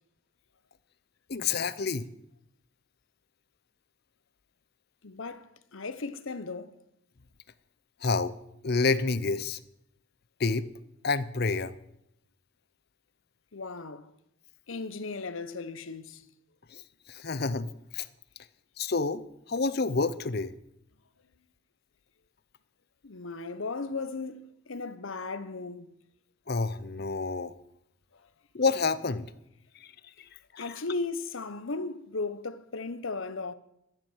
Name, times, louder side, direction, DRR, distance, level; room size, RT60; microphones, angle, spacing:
voice 1, 1.3-2.1 8.0-8.4 8.6-9.6 10.4-10.7 11.0-11.7 16.7-16.8 17.1-18.1 18.8-19.2 19.5-20.5 26.5-27.5 28.5-29.3 30.5-30.8, left 4 dB, 50° left, 0.7 m, -28 dB
voice 2, 5.0-6.8 13.5-14.1 14.7-16.2 23.0-25.9 30.6-33.5, left 3 dB, 75° left, 1.0 m, -36 dB
12.0 x 10.5 x 7.3 m
head